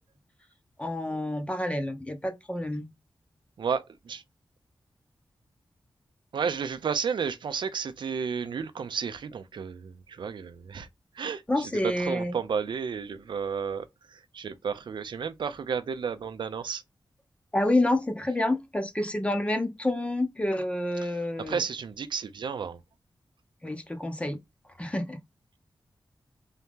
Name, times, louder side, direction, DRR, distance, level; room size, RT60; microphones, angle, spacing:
voice 1, 0.8-2.9 11.5-12.3 17.5-21.6 23.6-24.4 24.8-25.2, left 1 dB, 15° left, 0.6 m, -28 dB
voice 2, 3.6-4.2 6.3-10.9 11.2-11.7 12.0-13.8 14.1-16.8 21.0-22.8, right 6 dB, 75° right, 0.5 m, -32 dB
3.6 x 2.8 x 3.5 m
wide cardioid pair, 145°, 8 cm